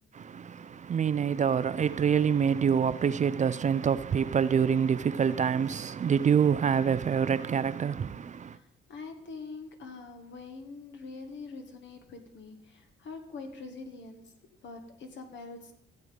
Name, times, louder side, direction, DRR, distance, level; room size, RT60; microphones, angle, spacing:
voice 1, 0.9-8.1, right 7 dB, 40° right, 0.5 m, -25 dB
voice 2, 8.9-14.2 14.6-15.7, left 4 dB, 65° left, 1.9 m, -44 dB
14.0 x 8.0 x 5.4 m
cardioid pair, 90°, 20 cm